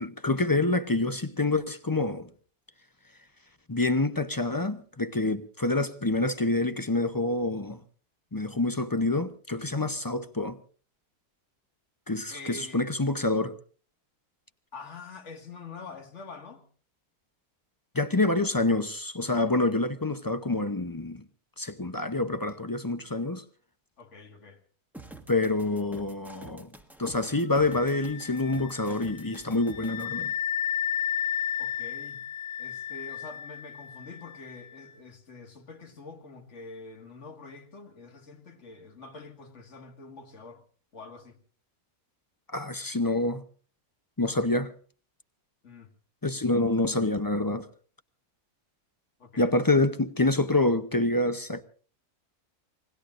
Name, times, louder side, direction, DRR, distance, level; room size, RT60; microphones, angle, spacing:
voice 1, 0.0-2.3 3.7-7.8 8.3-10.6 12.1-13.5 17.9-21.2 21.6-23.4 25.3-26.7 27.0-30.3 42.5-43.4 44.2-44.7 46.2-47.7 49.4-51.6, left 2 dB, 30° left, 0.4 m, -27 dB
voice 2, 12.3-12.9 14.7-16.6 24.0-24.6 31.6-32.3 32.6-40.6 40.9-41.4 45.6-45.9 49.2-49.5, left 3 dB, 50° left, 2.2 m, -45 dB
sound 1, 24.9-30.1, right 2 dB, ahead, 1.3 m, -47 dB
Wind instrument woodwind instrument, 27.5-34.9, left 10 dB, 70° left, 1.6 m, -34 dB
28.5 x 20.0 x 2.5 m
omnidirectional pair, 1.6 m